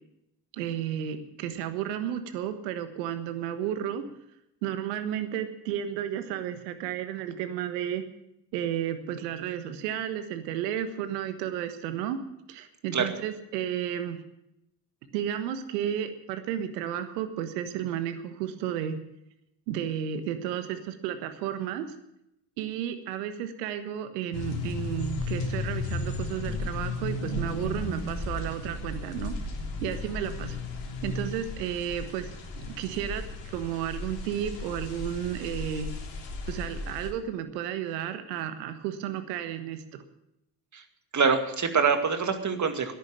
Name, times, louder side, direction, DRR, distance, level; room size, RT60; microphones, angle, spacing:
voice 1, 0.5-4.0 4.6-8.0 8.5-12.2 12.5-14.2 15.1-19.0 19.7-21.9 22.6-29.3 29.8-30.6 31.0-35.9 36.5-40.0, right 10 dB, 75° right, 9 dB, 1.5 m, -32 dB
sound 1, 24.3-37.1, left 2 dB, 60° left, 3.5 m, -35 dB
voice 2, 41.1-42.9, right 5 dB, 35° right, 7 dB, 2.2 m, -25 dB
14.5 x 10.5 x 7.6 m, 0.83 s
hypercardioid pair, 55°, 50 cm